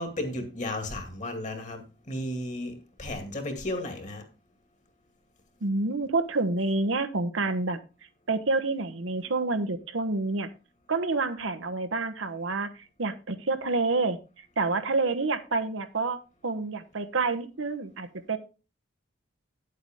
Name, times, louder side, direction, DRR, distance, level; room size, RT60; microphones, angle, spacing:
voice 1, 0.0-4.2, left 1 dB, 40° left, 2.1 m, -34 dB
voice 2, 5.6-7.8 8.3-10.5 10.9-14.2 14.6-18.4, right 3 dB, 80° right, 1.0 m, -28 dB
9.6 x 8.1 x 3.6 m
head